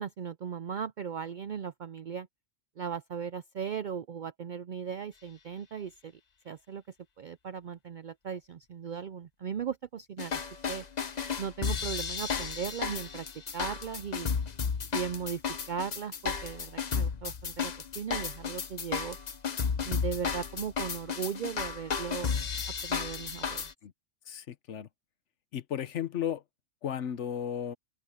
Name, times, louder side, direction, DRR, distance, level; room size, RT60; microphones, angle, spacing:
voice 1, 0.0-2.3 2.8-6.1 6.5-6.8 7.2-10.4 10.7-10.8 11.4-13.3 13.5-14.3 14.9-15.4 15.7-19.2 19.8-22.3 22.8-23.7, right 7 dB, 65° right, 0.5 m, -37 dB
sound 1, 10.2-23.7, left 6 dB, 40° left, 0.8 m, -33 dB
voice 2, 24.3-24.9 25.5-26.4 26.8-27.8, left 9 dB, 70° left, 1.2 m, -34 dB
open air
omnidirectional pair, 1.3 m